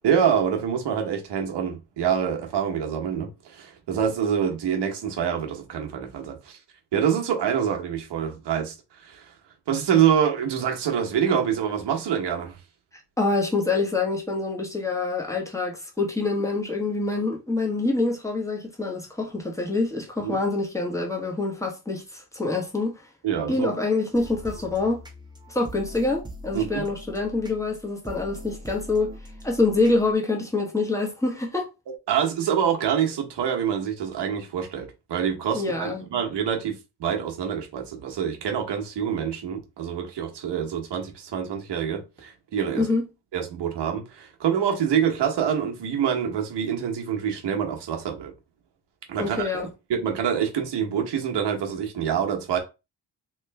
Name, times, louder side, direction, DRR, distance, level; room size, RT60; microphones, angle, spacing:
voice 1, 0.0-6.6 6.9-8.7 9.0-9.3 9.7-12.6 20.2-20.3 23.2-23.7 26.5-26.9 32.1-42.9 43.3-48.3 49.1-49.6 49.9-52.6, right 8 dB, 85° right, 1.1 m, -26 dB
voice 2, 13.2-23.1 23.5-25.0 25.5-29.1 29.4-31.7 35.5-36.0 42.7-43.0 49.2-49.7, left 3 dB, 5° left, 1.3 m, -26 dB
sound 1, 24.1-30.1, equal, 10° right, 1.0 m, -42 dB
3.1 x 3.1 x 3.3 m
cardioid pair, 90°, 41 cm